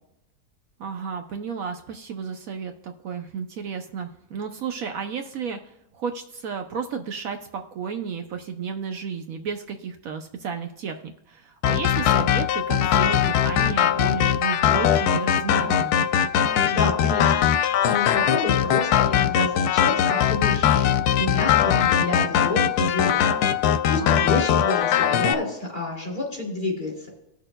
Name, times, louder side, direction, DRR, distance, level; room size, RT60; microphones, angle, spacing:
voice 1, 0.8-16.0 24.0-24.4, right 6 dB, 70° right, 6 dB, 1.0 m, -32 dB
sound 1, 11.6-25.3, left 9 dB, 85° left, 1.1 m, -21 dB
voice 2, 16.7-20.9 21.2-23.3 23.9-27.1, left 2 dB, 35° left, -1 dB, 3.0 m, -29 dB
19.0 x 6.6 x 2.2 m, 0.85 s
omnidirectional pair, 1.6 m